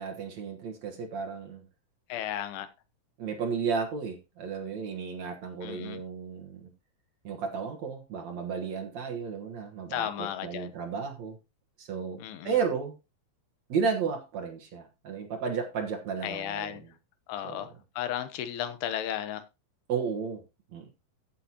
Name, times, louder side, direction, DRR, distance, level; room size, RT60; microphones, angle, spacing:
voice 1, 0.0-1.6 3.2-6.7 7.2-11.4 11.8-12.2 12.4-12.9 13.7-16.9 17.4-17.7 19.9-20.4 20.7-20.9, right 6 dB, 60° right, 3 dB, 2.2 m, -33 dB
voice 2, 2.1-2.7 5.6-6.0 9.9-10.7 12.2-12.5 16.2-16.8 17.3-19.4, left 11 dB, 85° left, 11 dB, 3.1 m, -34 dB
15.5 x 7.8 x 2.9 m, 0.26 s
omnidirectional pair, 4.5 m